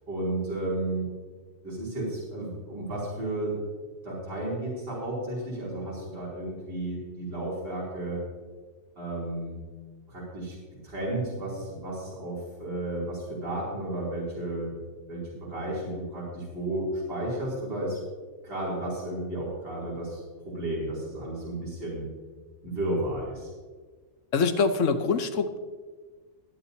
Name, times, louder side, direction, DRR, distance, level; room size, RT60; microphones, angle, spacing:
voice 1, 0.1-1.1 1.6-3.6 4.0-8.2 9.0-9.6 10.1-10.6 10.8-14.7 15.1-18.0 18.4-22.0 22.6-23.5, right 1 dB, 45° right, -7 dB, 3.3 m, -33 dB
voice 2, 24.3-25.6, left 4 dB, 70° left, 9 dB, 1.1 m, -24 dB
19.5 x 8.9 x 2.7 m, 1.4 s
omnidirectional pair, 1.3 m